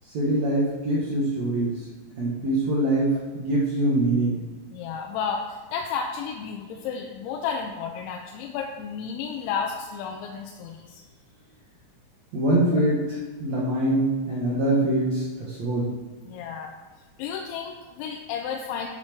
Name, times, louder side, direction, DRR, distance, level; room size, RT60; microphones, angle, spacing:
voice 1, 0.1-1.9 2.2-4.4 12.3-13.0 13.4-15.9, right 1 dB, 75° right, -7 dB, 1.6 m, -24 dB
voice 2, 4.7-11.0 16.3-16.7 17.2-18.9, left 6 dB, 90° left, 2 dB, 3.0 m, -32 dB
9.2 x 4.4 x 5.9 m, 1.3 s
omnidirectional pair, 5.3 m